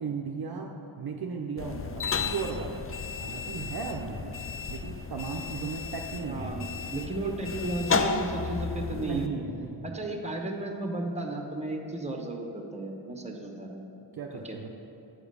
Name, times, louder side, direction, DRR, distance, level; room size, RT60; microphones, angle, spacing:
voice 1, 0.0-2.8 3.2-4.4 4.7-6.7 8.9-10.0 14.1-14.7, right 5 dB, 50° right, 1 dB, 0.7 m, -36 dB
sound 1, 1.6-9.3, left 5 dB, 30° left, 0.5 m, -33 dB
voice 2, 6.3-9.3 9.8-13.8 14.4-14.6, right 2 dB, 15° right, 2 dB, 1.1 m, -34 dB
8.0 x 4.9 x 6.7 m, 2.9 s
cardioid pair, 70°, 49 cm